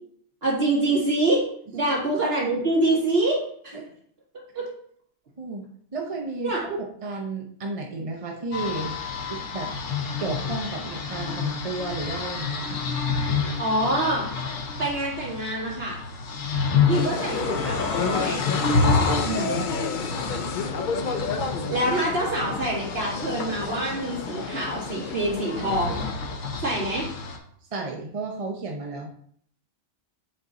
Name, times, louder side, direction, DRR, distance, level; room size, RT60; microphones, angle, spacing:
voice 1, 0.4-1.4 1.7-3.8 4.5-4.6 6.4-6.6 13.6-14.3 14.8-16.0 16.9-18.4 21.7-26.0 26.6-27.1, right 1 dB, 55° right, -4 dB, 2.4 m, -25 dB
voice 2, 5.9-9.0 9.3-9.7 10.2-12.8 19.2-19.8 27.7-29.1, right 3 dB, 35° right, 0 dB, 0.7 m, -32 dB
sound 1, 8.5-27.4, left 4 dB, 90° left, 1.3 m, -29 dB
sound 2, 16.9-26.1, left 5 dB, 55° left, 0.5 m, -31 dB
7.8 x 3.8 x 3.9 m, 0.63 s
omnidirectional pair, 1.3 m